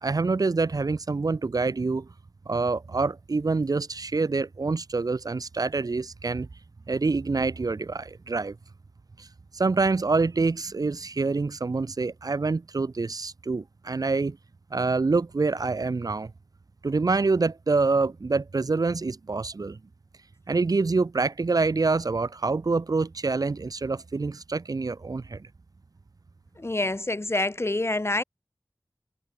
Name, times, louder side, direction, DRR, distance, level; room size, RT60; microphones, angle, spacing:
voice 1, 0.0-2.1 2.5-6.5 6.9-8.6 9.2-9.3 9.5-14.4 14.7-16.3 16.8-19.8 20.5-25.5, right 3 dB, 65° right, 0.6 m, -26 dB
voice 2, 26.6-28.2, left 2 dB, 40° left, 1.8 m, -27 dB
wide cardioid pair, 50°, 7 cm